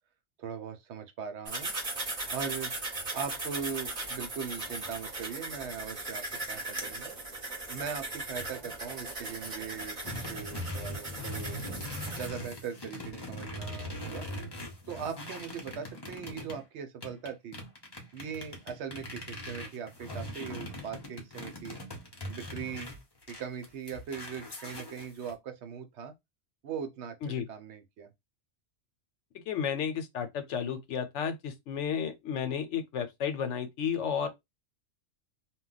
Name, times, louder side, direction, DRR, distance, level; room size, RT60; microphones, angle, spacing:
voice 1, 0.4-1.7 2.3-2.7 3.1-7.1 7.7-11.6 12.1-14.3 14.9-17.6 18.1-21.8 22.3-22.9 23.3-26.1 26.6-28.1, right 7 dB, 75° right, 0.9 m, -40 dB
sound 1, 1.5-12.3, right 2 dB, 35° right, 0.8 m, -38 dB
sound 2, 10.0-16.6 17.0-25.3, left 1 dB, 25° left, 0.6 m, -41 dB
voice 2, 29.5-34.3, left 7 dB, 80° left, 0.9 m, -32 dB
2.2 x 2.1 x 3.8 m
omnidirectional pair, 1.2 m